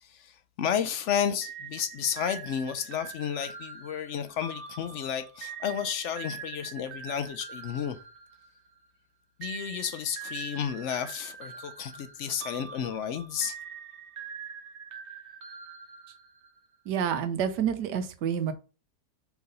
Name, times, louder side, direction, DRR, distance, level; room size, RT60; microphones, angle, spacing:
voice 1, 0.0-8.0 9.4-13.6, left 8 dB, 70° left, 0.7 m, -32 dB
sound 1, 1.4-8.8 9.4-16.6, right 6 dB, 50° right, 0.9 m, -44 dB
voice 2, 16.9-18.5, right 8 dB, 85° right, 1.4 m, -28 dB
4.7 x 4.1 x 5.2 m
omnidirectional pair, 1.7 m